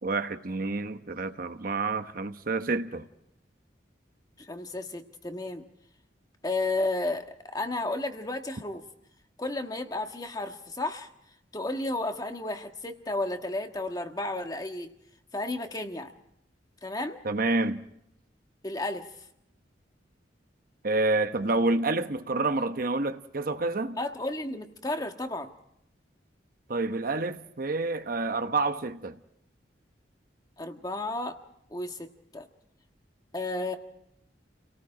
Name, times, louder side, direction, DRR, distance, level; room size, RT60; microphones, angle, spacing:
voice 1, 0.0-3.0 17.2-17.8 20.8-24.0 26.7-29.2, right 3 dB, 50° right, 9 dB, 1.0 m, -28 dB
voice 2, 4.5-5.6 6.4-7.3 7.5-8.8 9.4-11.1 11.5-14.9 15.3-16.1 16.8-17.2 18.6-19.1 24.0-25.5 30.6-31.4 31.7-32.4 33.3-33.8, left 2 dB, 20° left, 5 dB, 1.5 m, -32 dB
30.0 x 18.5 x 4.9 m, 0.77 s
head